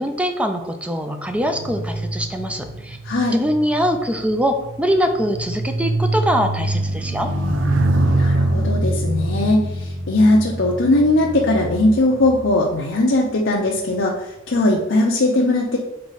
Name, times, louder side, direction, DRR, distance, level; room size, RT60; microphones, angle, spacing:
voice 1, 0.0-3.0 3.3-7.3, equal, 5° right, 5 dB, 0.6 m, -22 dB
sound 1, 1.3-12.9 13.7-13.9, right 1 dB, 85° right, 0.9 m, -24 dB
voice 2, 3.0-3.4 8.1-15.8, left 2 dB, 70° left, -2 dB, 0.8 m, -19 dB
6.7 x 4.6 x 4.1 m, 0.93 s
head